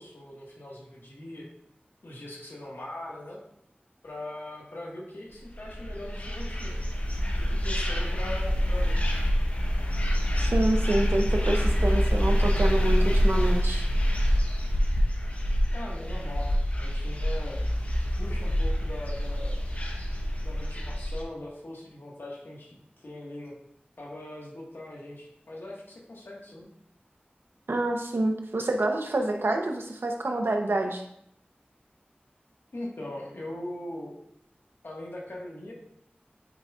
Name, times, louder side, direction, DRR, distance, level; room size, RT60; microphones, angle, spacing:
voice 1, 0.0-1.5 2.0-3.4 4.0-6.8 7.1-9.0 15.7-16.5 16.8-17.7 18.2-19.6 20.4-23.5 24.0-26.7 32.7-34.2 34.8-35.7, left 1 dB, 80° left, -2 dB, 1.5 m, -41 dB
sound 1, 5.5-21.2, equal, 40° left, 1.0 m, -26 dB
voice 2, 10.4-13.8 27.7-31.0, right 2 dB, 85° right, 3 dB, 0.8 m, -27 dB
8.8 x 5.1 x 2.4 m, 0.75 s
wide cardioid pair, 45°, 4 cm